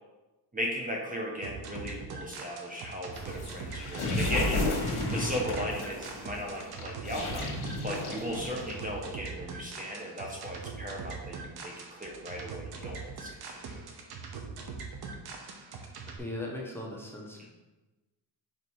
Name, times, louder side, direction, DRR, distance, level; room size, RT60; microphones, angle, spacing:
voice 1, 0.5-7.5 7.8-13.8, equal, 20° right, -2 dB, 1.3 m, -37 dB
sound 1, 1.4-16.2, right 4 dB, 60° right, 1.1 m, -42 dB
sound 2, 3.1-9.0, left 2 dB, 60° left, 1.6 m, -33 dB
voice 2, 16.1-17.5, left 1 dB, 5° left, -3 dB, 1.3 m, -38 dB
5.4 x 4.7 x 4.7 m, 1.1 s
cardioid pair, 90°, 44 cm